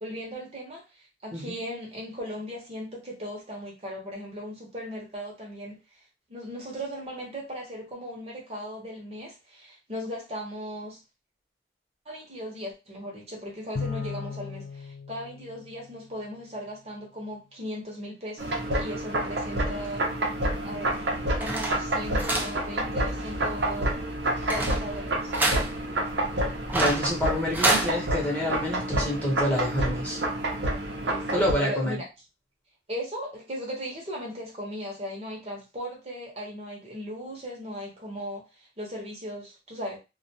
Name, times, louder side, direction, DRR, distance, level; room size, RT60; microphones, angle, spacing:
voice 1, 0.0-5.8 6.3-11.0 12.1-20.1 20.6-20.9 21.3-23.9 24.5-25.3 31.0-32.1 32.9-40.0, equal, 35° right, 0.8 m, -37 dB
Bowed string instrument, 13.7-16.4, left 5 dB, 60° left, 0.4 m, -37 dB
sound 1, 18.4-31.5, right 1 dB, 75° right, 0.6 m, -29 dB
sound 2, 20.8-27.9, right 2 dB, 10° right, 0.4 m, -30 dB
voice 2, 26.7-30.2 31.3-32.0, left 1 dB, 10° left, 0.8 m, -27 dB
2.3 x 2.2 x 2.7 m
head